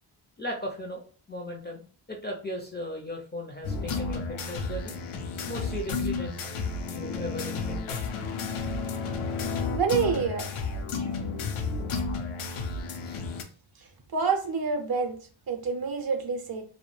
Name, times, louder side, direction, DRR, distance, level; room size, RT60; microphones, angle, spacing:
voice 1, 0.4-1.0 1.3-5.0 5.5-6.5 6.9-8.0 13.0-13.2, left 1 dB, 25° left, 1 dB, 0.4 m, -37 dB
sound 1, 3.6-13.4, left 4 dB, 80° left, 0.5 m, -32 dB
voice 2, 9.7-10.5 14.1-15.1 15.5-16.6, right 5 dB, 50° right, 5 dB, 0.6 m, -27 dB
2.2 x 2.1 x 3.0 m, 0.41 s
wide cardioid pair, 80°, 49 cm